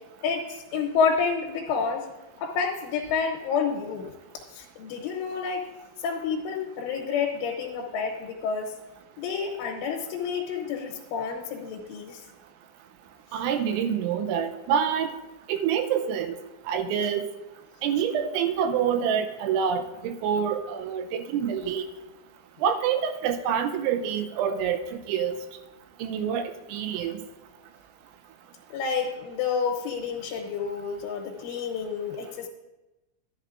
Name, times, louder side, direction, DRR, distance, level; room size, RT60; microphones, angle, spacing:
voice 1, 0.2-2.0 2.4-4.1 4.5-5.7 6.0-8.7 9.2-12.2 28.7-32.5, left 5 dB, 90° left, 1 dB, 3.5 m, -29 dB
voice 2, 13.3-15.1 15.5-16.4 16.7-17.2 17.8-21.9 22.6-25.4 26.0-26.4 26.7-27.2, right 8 dB, 85° right, 8 dB, 3.0 m, -26 dB
12.0 x 11.0 x 2.5 m, 1.0 s
omnidirectional pair, 5.5 m